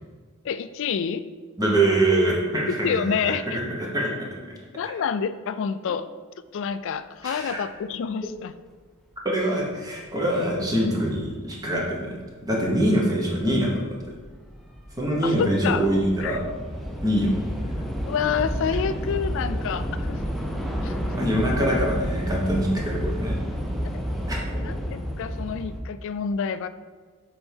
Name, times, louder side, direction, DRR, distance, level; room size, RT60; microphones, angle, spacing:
voice 1, 0.4-1.2 2.7-3.6 4.7-6.1 6.5-8.5 15.2-15.9 16.2-16.4 18.0-20.2 20.8-21.0 24.6-26.7, left 6 dB, 60° left, 13 dB, 0.3 m, -28 dB
voice 2, 1.6-4.3 4.8-4.9 7.2-7.6 9.2-12.1 12.4-14.0 15.0-16.4 17.0-17.3 21.1-23.4 24.3-24.4, right 1 dB, 15° right, -2 dB, 1.1 m, -24 dB
Train / Subway metro underground, 13.2-25.8, equal, ahead, 0.6 m, -30 dB
7.0 x 4.5 x 3.5 m, 1.5 s
head